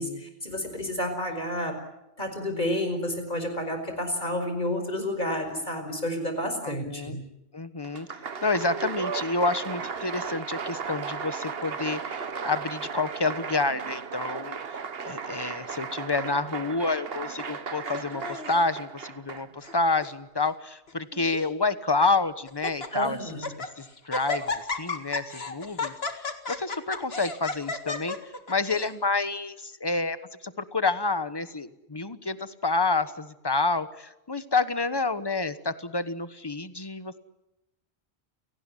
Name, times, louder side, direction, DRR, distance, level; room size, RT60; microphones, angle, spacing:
voice 1, 0.0-1.7 2.2-7.2 22.9-23.5, left 1 dB, 45° left, 6 dB, 5.2 m, -30 dB
voice 2, 6.6-7.2 7.5-8.1 8.4-14.6 15.0-28.2 28.5-30.2 30.4-37.2, left 3 dB, 25° left, 13 dB, 1.1 m, -29 dB
Applause, 7.8-19.7, right 6 dB, 65° right, 1.4 m, -35 dB
Laughter, 17.9-18.7 19.4-19.8 20.0-20.1 20.9-21.5 22.0-22.1 22.5-22.9 23.3-23.7 24.1-28.9, left 3 dB, 65° left, 2.3 m, -33 dB
29.5 x 18.0 x 10.0 m, 0.94 s
omnidirectional pair, 1.1 m